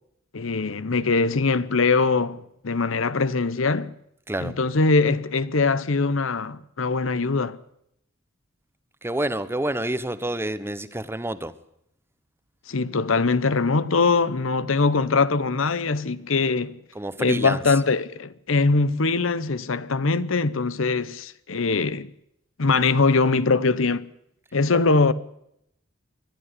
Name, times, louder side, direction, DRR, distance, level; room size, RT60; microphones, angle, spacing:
voice 1, 0.3-4.0 4.4-7.6 12.7-16.8 17.2-22.1 22.6-24.1 24.5-25.1, left 4 dB, 70° left, 0.9 m, -22 dB
voice 2, 9.0-11.5 16.9-17.6, right 1 dB, 10° right, 1.0 m, -28 dB
21.0 x 13.0 x 9.7 m
head